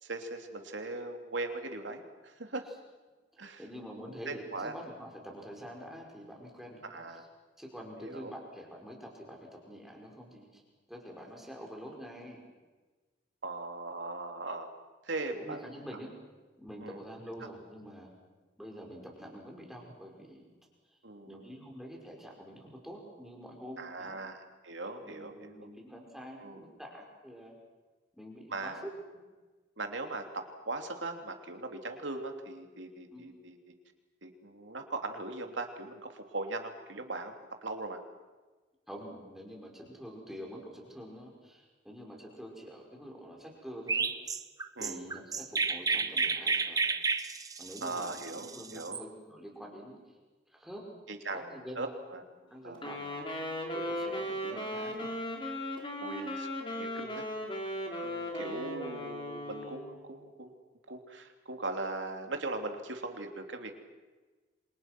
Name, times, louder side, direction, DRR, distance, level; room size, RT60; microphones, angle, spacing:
voice 1, 0.0-2.6 3.4-3.6 4.1-4.7 6.9-7.2 8.0-8.3 13.4-14.7 15.0-15.7 16.8-17.0 21.0-21.5 23.8-25.5 26.4-26.7 28.5-28.8 29.8-33.6 34.2-37.3 37.6-38.0 44.8-45.0 47.8-49.0 51.1-52.2 52.6-52.8 56.0-57.2 58.0-59.8 60.1-60.5 60.9-63.8, right 2 dB, 90° right, 5 dB, 3.1 m, -39 dB
voice 2, 3.6-7.0 7.6-10.6 10.9-12.4 15.4-16.1 16.6-18.1 18.6-20.4 21.2-24.2 25.0-27.5 28.1-28.9 33.1-33.3 38.9-44.1 44.8-46.8 47.6-50.0 50.5-50.9 51.5-51.8 52.5-53.1 53.7-55.1, equal, ahead, -1 dB, 5.3 m, -46 dB
Chirp tweet, 43.9-49.0, right 4 dB, 20° right, 1.0 m, -31 dB
Wind instrument woodwind instrument, 52.7-60.0, left 1 dB, 25° left, 3.8 m, -37 dB
28.0 x 26.5 x 6.1 m, 1.3 s
head